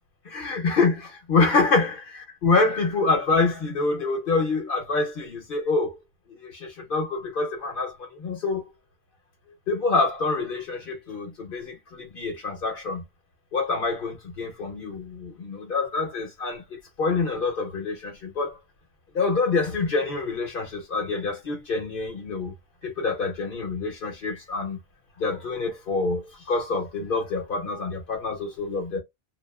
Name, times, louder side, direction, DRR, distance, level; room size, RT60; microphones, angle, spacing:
voice 1, 0.2-6.0 6.3-8.7 9.7-13.0 13.5-16.6 17.0-18.6 19.1-22.5 22.8-24.8 25.2-29.0, left 3 dB, 60° left, 0.9 m, -26 dB
2.7 x 2.3 x 2.2 m
omnidirectional pair, 1.1 m